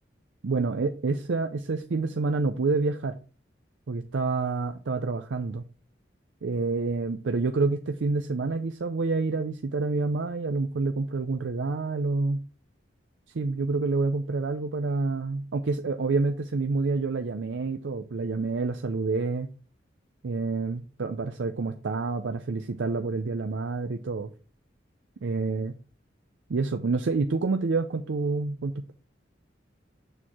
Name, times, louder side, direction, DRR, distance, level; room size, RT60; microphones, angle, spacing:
voice 1, 0.4-3.2 3.9-5.6 6.4-12.4 13.3-19.5 20.2-24.3 25.2-25.7 26.5-28.9, right 3 dB, 75° right, 7 dB, 0.5 m, -28 dB
6.8 x 4.5 x 4.2 m, 0.37 s
head